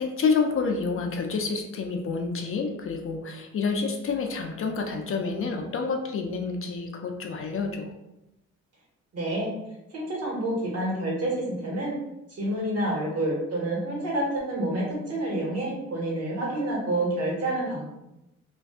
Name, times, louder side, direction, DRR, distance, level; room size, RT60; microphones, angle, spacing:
voice 1, 0.0-7.9, left 4 dB, 45° left, 3 dB, 0.5 m, -28 dB
voice 2, 9.1-9.5 9.9-12.0 12.3-17.8, right 1 dB, 55° right, -3 dB, 1.3 m, -28 dB
2.5 x 2.2 x 3.5 m, 0.89 s
cardioid pair, 90°, 30 cm